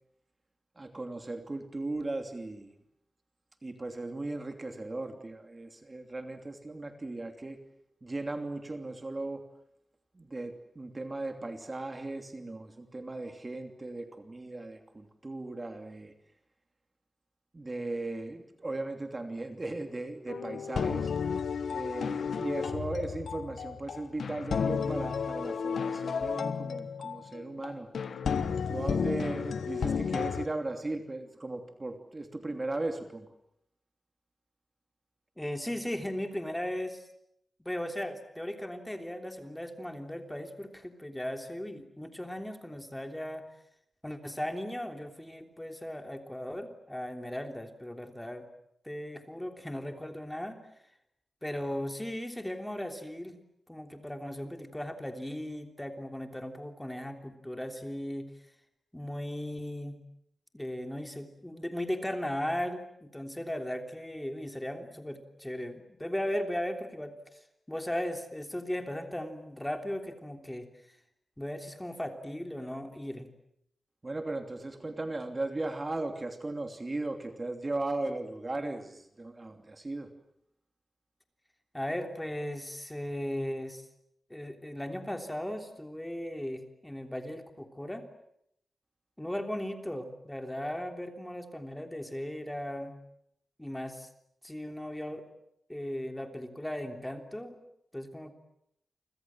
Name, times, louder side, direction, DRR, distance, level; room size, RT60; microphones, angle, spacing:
voice 1, 0.8-2.7 3.6-7.6 8.0-9.4 10.1-16.1 17.5-21.1 21.7-27.9 28.7-33.3 74.0-80.1, right 2 dB, 25° right, 6 dB, 2.9 m, -37 dB
sound 1, 20.3-30.5, left 6 dB, 85° left, 1.3 m, -32 dB
voice 2, 35.4-37.1 37.6-43.4 44.0-48.5 48.8-50.6 51.4-53.4 53.7-58.3 58.9-60.0 60.5-67.4 67.7-70.7 71.4-73.3 81.7-83.9 84.3-88.1 89.2-93.0 93.6-94.1 94.4-95.2 95.7-97.6 97.9-98.3, left 1 dB, 10° left, 5 dB, 3.3 m, -37 dB
29.5 x 25.5 x 7.5 m, 0.76 s
wide cardioid pair, 110°, 0 cm